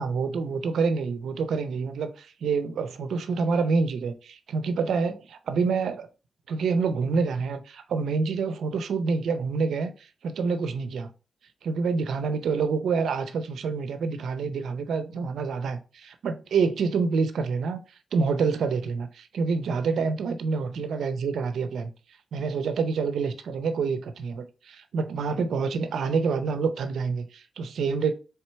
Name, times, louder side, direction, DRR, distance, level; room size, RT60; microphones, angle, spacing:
voice 1, 0.0-6.1 6.5-11.1 11.6-17.8 18.1-21.9 22.3-28.1, right 5 dB, 80° right, 0.5 m, -27 dB
4.4 x 3.4 x 3.3 m
cardioid pair, 65°, 0 cm